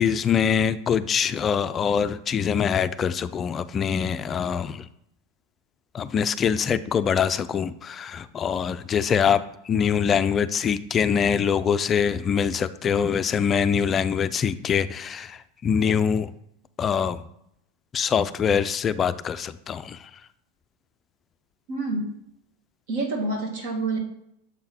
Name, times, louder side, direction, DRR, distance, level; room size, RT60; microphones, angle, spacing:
voice 1, 0.0-4.9 5.9-16.3 16.8-17.2 17.9-20.1, left 7 dB, 30° left, 12 dB, 0.3 m, -24 dB
voice 2, 21.7-22.1 22.9-24.0, right 2 dB, 65° right, 1 dB, 2.0 m, -27 dB
7.3 x 3.8 x 4.3 m, 0.74 s
hypercardioid pair, 105°, 0 cm